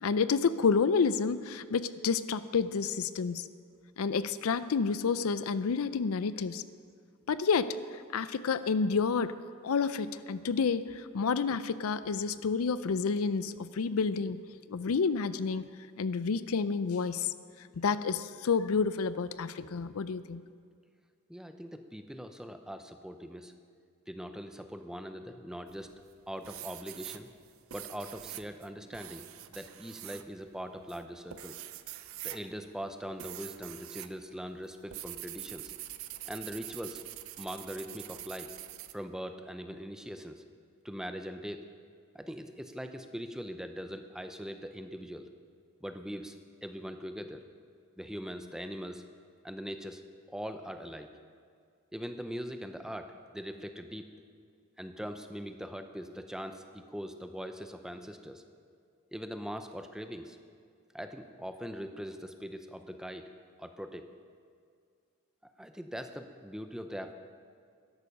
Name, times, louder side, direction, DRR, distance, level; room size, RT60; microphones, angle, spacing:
voice 1, 0.0-3.5 4.0-6.6 7.3-7.8 8.1-9.4 9.6-14.4 14.7-15.7 16.0-17.3 17.8-20.4, left 5 dB, 75° left, 14 dB, 0.5 m, -29 dB
voice 2, 21.3-23.5 24.1-25.9 26.3-27.3 27.7-29.3 29.5-31.6 32.2-35.7 36.2-37.0 37.4-38.5 38.9-40.4 40.8-41.7 42.1-45.3 45.8-47.4 48.0-49.0 49.4-50.0 50.3-51.1 51.9-54.1 54.8-58.4 59.1-60.4 60.9-63.3 63.6-64.1 65.6-67.1, equal, 5° right, 7 dB, 0.6 m, -41 dB
sound 1, 25.7-26.1 26.4-34.1 34.4-38.9, right 14 dB, 70° right, 0.5 m, -45 dB
13.5 x 11.0 x 5.3 m, 2.2 s
head